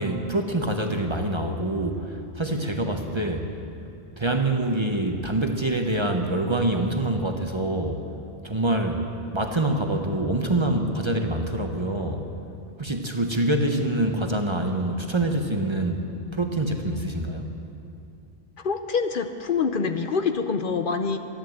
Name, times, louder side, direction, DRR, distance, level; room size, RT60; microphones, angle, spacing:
voice 1, 0.0-3.5 4.2-8.0 8.4-12.2 12.8-17.5, right 1 dB, 30° right, 4 dB, 0.9 m, -25 dB
voice 2, 18.6-21.2, left 5 dB, 55° left, 7 dB, 0.8 m, -25 dB
13.0 x 11.5 x 7.8 m, 2.7 s
omnidirectional pair, 1.1 m